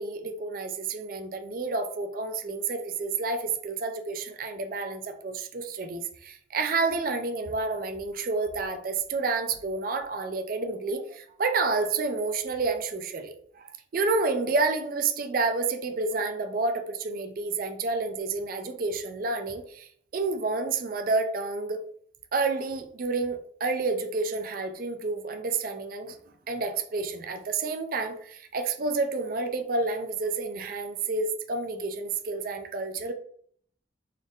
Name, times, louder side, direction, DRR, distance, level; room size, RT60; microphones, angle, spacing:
voice 1, 0.0-21.8 22.3-26.2 26.5-33.1, right 3 dB, 50° right, 7 dB, 0.4 m, -29 dB
4.0 x 2.5 x 3.5 m, 0.62 s
head